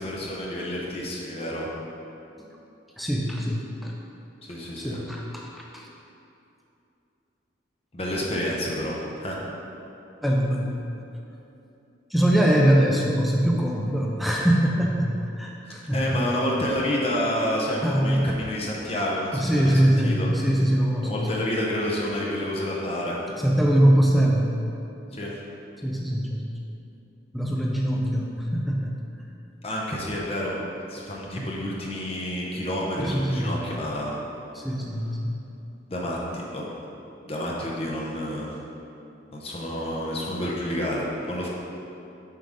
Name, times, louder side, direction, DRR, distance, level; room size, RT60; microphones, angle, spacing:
voice 1, 0.0-1.7 4.4-5.0 7.9-9.4 15.9-20.3 21.0-23.2 25.1-25.3 29.6-30.6 30.9-34.2 35.9-36.7 37.3-38.5 39.3-41.5, left 1 dB, 30° left, -3 dB, 0.8 m, -29 dB
voice 2, 3.0-3.9 4.8-5.9 10.2-10.8 12.1-16.2 17.8-18.3 19.3-21.1 23.4-24.5 25.8-26.7 27.3-29.0 31.3-31.5 33.0-33.5 34.5-35.4, right 1 dB, ahead, -2 dB, 0.4 m, -23 dB
7.5 x 5.2 x 3.6 m, 2.8 s
head